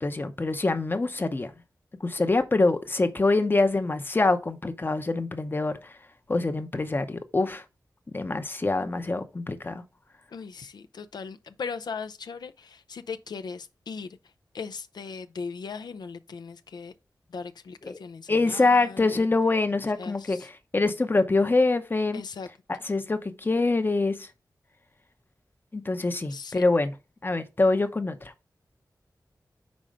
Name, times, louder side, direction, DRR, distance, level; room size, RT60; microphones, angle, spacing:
voice 1, 0.0-1.5 2.0-5.9 6.3-7.6 8.1-9.8 17.8-18.0 18.3-22.2 22.7-24.3 25.7-26.9 27.2-28.3, left 3 dB, 30° left, 0.6 m, -25 dB
voice 2, 10.3-14.2 14.5-16.9 17.3-19.3 20.0-20.5 22.1-22.5 26.3-26.6, left 5 dB, 85° left, 0.4 m, -38 dB
5.2 x 4.3 x 5.0 m
wide cardioid pair, 100°, 7 cm